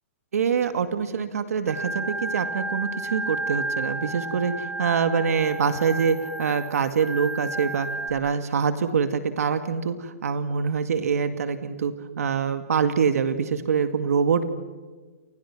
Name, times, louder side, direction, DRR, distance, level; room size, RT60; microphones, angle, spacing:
voice 1, 0.3-14.4, right 6 dB, 80° right, 8 dB, 2.2 m, -25 dB
Organ, 1.7-8.1, right 2 dB, 5° right, 4.5 m, -32 dB
29.5 x 29.0 x 6.2 m, 1.3 s
hypercardioid pair, 155°, 8 cm